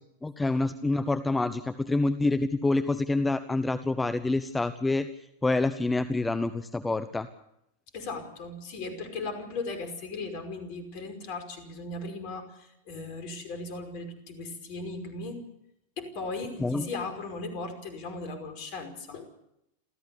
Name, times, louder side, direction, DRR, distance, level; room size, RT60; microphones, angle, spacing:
voice 1, 0.2-7.3 16.6-16.9, left 2 dB, 10° left, 11 dB, 1.0 m, -27 dB
voice 2, 7.9-15.4 16.0-19.2, left 3 dB, 45° left, 7 dB, 5.3 m, -37 dB
28.0 x 14.5 x 7.0 m, 0.79 s
figure-of-eight pair, 90°, 0 cm